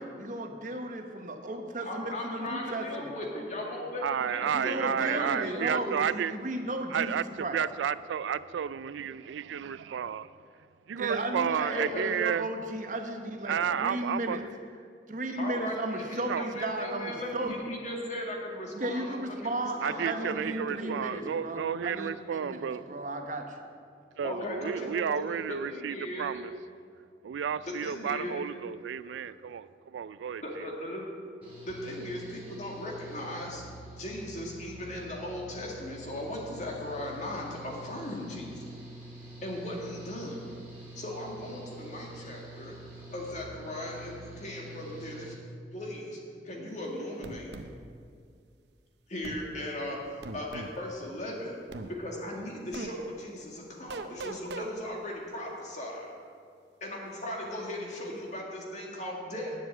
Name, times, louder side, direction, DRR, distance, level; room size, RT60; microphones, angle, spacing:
voice 1, 0.0-3.1 3.4-3.5 4.4-7.6 10.9-14.4 15.1-17.6 18.7-23.6 46.6-46.7, right 1 dB, 45° right, 5 dB, 1.0 m, -35 dB
voice 2, 1.8-5.8 11.7-12.0 15.4-21.0 24.2-26.5 27.7-28.5 29.0-29.2 30.4-31.0 31.7-33.6 34.0-38.7 39.4-40.4 41.0-42.8 43.1-45.3 45.7-46.2 46.4-47.5 49.1-51.6 52.0-56.1 56.8-59.5, left 1 dB, 40° left, -1 dB, 2.1 m, -38 dB
voice 3, 4.0-6.3 6.9-10.3 10.9-12.5 13.5-14.4 16.3-16.5 19.8-23.2 24.2-26.5 27.2-29.7 29.9-30.4, right 8 dB, 90° right, 16 dB, 0.3 m, -32 dB
Engine / Mechanical fan, 31.4-45.3, right 1 dB, 10° right, 2.6 m, -47 dB
sound 1, 47.2-47.7 49.2-49.4 50.2-50.7 51.7-51.9 52.7-52.9 53.9-54.7, right 2 dB, 70° right, 0.7 m, -39 dB
10.0 x 7.2 x 8.0 m, 2.3 s
head